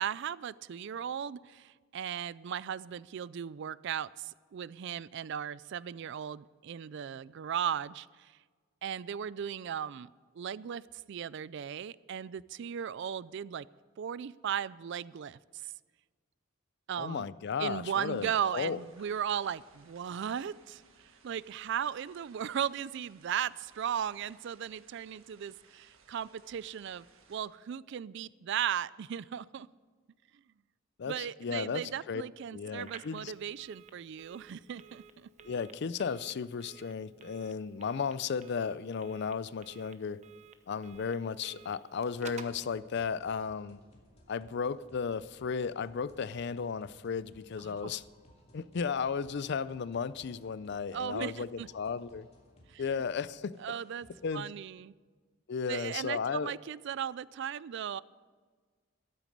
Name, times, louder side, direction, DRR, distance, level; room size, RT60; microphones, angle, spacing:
voice 1, 0.0-8.3 8.8-10.1 10.4-10.8 11.1-13.7 14.0-15.7 16.9-17.3 17.6-20.8 21.2-29.7 31.1-35.3 47.6-47.9 50.9-51.7 52.7-53.0 53.6-54.1 54.3-54.9 55.7-58.0, right 8 dB, 60° right, 0.3 m, -37 dB
voice 2, 17.0-18.8 31.0-32.2 32.5-33.3 35.4-40.2 40.7-43.8 44.3-48.0 48.5-52.3 52.8-53.6 54.2-54.5 55.5-56.5, left 6 dB, 55° left, 0.4 m, -34 dB
sound 1, 17.8-27.4, right 5 dB, 85° right, 1.6 m, -63 dB
Telephone, 32.8-42.6, right 5 dB, 35° right, 0.8 m, -53 dB
sound 2, 42.1-54.4, equal, 30° left, 2.4 m, -61 dB
13.5 x 12.5 x 5.3 m
head